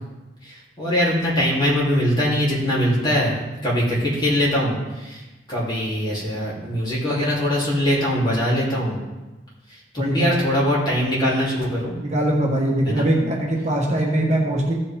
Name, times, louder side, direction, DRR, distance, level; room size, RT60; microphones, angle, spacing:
voice 1, 0.4-3.3 3.6-5.2 5.5-9.0 9.9-11.9 12.8-13.1, equal, 25° left, -7 dB, 3.4 m, -22 dB
voice 2, 10.0-10.4 12.0-14.7, right 1 dB, 40° right, -1 dB, 1.3 m, -21 dB
15.0 x 5.3 x 3.7 m, 1.1 s
head